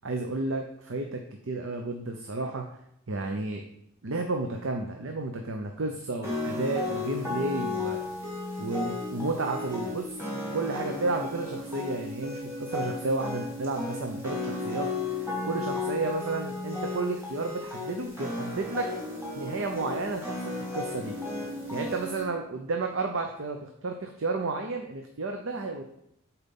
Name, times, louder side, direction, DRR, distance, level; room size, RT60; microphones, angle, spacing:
voice 1, 0.0-2.6 3.1-3.6 4.0-8.0 8.6-10.1 10.5-14.9 15.4-18.9 19.3-20.4 20.7-21.1 21.7-25.8, right 3 dB, 65° right, 4 dB, 0.7 m, -32 dB
sound 1, 6.2-22.2, left 2 dB, 10° right, 2.4 m, -34 dB
8.0 x 4.3 x 5.3 m, 0.74 s
head